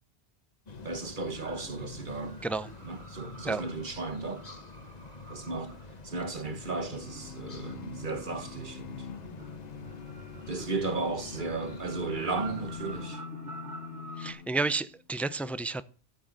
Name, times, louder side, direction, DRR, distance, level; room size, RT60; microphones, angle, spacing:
sound 1, 0.7-13.1, left 4 dB, 40° left, 1.1 m, -48 dB
voice 1, 0.8-2.4 2.8-4.4 5.3-5.8 6.0-9.1 10.5-13.2, right 3 dB, 50° right, 1.7 m, -35 dB
sound 2, 1.3-14.3, right 3 dB, 90° right, 2.3 m, -48 dB
sound 3, 6.7-15.0, left 6 dB, 70° left, 1.0 m, -45 dB
voice 2, 14.2-15.8, right 3 dB, ahead, 0.4 m, -31 dB
14.0 x 7.6 x 7.6 m
omnidirectional pair, 1.1 m